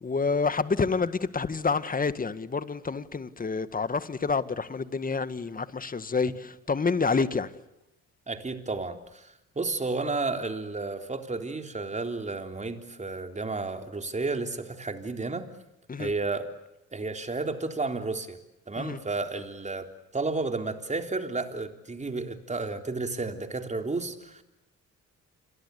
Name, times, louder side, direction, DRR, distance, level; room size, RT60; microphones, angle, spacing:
voice 1, 0.0-7.5 15.9-16.1 18.8-19.0, left 4 dB, 30° left, 1.8 m, -28 dB
voice 2, 8.3-15.5 16.0-16.5 16.9-18.4 18.7-19.9 20.1-24.4, right 3 dB, 25° right, 3.8 m, -32 dB
29.0 x 23.0 x 8.4 m
cardioid pair, 90°, 30 cm